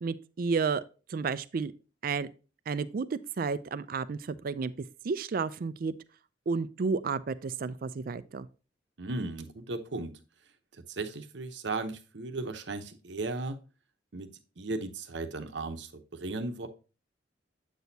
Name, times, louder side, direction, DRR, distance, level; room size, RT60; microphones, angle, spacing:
voice 1, 0.0-0.8 1.1-1.7 2.0-2.3 2.7-5.9 6.5-8.5, right 5 dB, 50° right, 0.4 m, -32 dB
voice 2, 9.0-10.1 10.9-13.6 14.1-16.7, right 2 dB, 75° right, 0.9 m, -36 dB
8.0 x 6.3 x 2.7 m
head